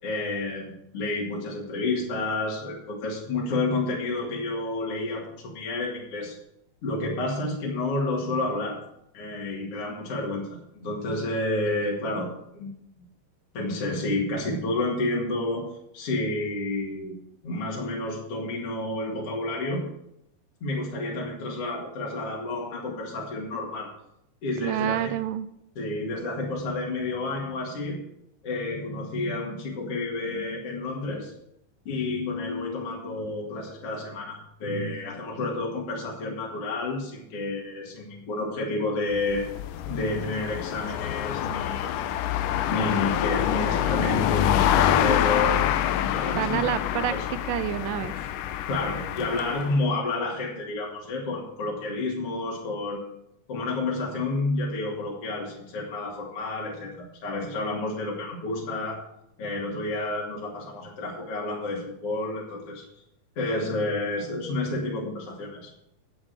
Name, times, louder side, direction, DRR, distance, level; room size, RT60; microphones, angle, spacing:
voice 1, 0.0-6.4 6.8-8.8 9.1-12.3 12.6-12.7 13.5-15.6 15.9-17.1 17.4-19.8 20.6-23.9 24.4-25.1 25.8-28.0 28.4-31.3 31.9-39.5 39.8-42.1 42.7-45.6 45.9-46.7 47.1-47.2 48.7-53.1 53.5-59.0 59.4-62.8 63.4-65.7, left 2 dB, 50° left, -2 dB, 2.7 m, -30 dB
voice 2, 24.6-25.5 46.4-47.1 47.4-48.1, right 11 dB, 90° right, 12 dB, 2.3 m, -28 dB
sound 1, 39.1-49.8, left 11 dB, 85° left, 2.2 m, -26 dB
9.6 x 7.4 x 6.3 m, 0.77 s
omnidirectional pair, 3.7 m